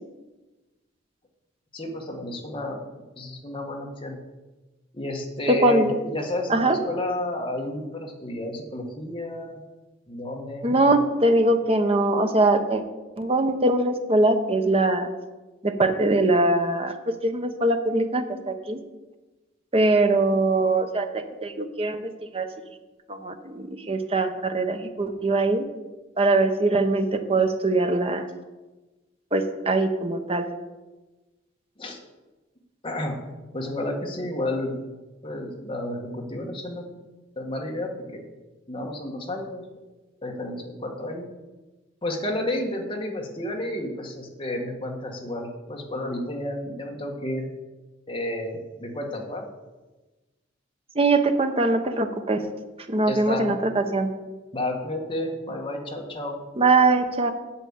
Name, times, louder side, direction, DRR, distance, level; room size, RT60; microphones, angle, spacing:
voice 1, 1.7-2.8 3.1-4.2 4.9-9.6 10.1-11.0 31.8-32.0 32.8-33.2 33.5-34.8 35.2-36.9 37.3-38.2 38.7-39.6 40.2-41.3 42.0-47.5 48.1-49.5 53.1-53.6 54.5-56.4, left 1 dB, 25° left, 0 dB, 1.7 m, -31 dB
voice 2, 5.5-5.9 6.5-6.8 10.6-12.8 13.2-15.1 15.6-16.9 17.2-18.8 19.7-22.5 23.1-25.6 26.2-28.3 29.3-30.5 50.9-52.4 52.9-54.1 56.6-57.3, right 2 dB, 30° right, 7 dB, 0.9 m, -22 dB
8.6 x 8.0 x 7.3 m, 1.2 s
head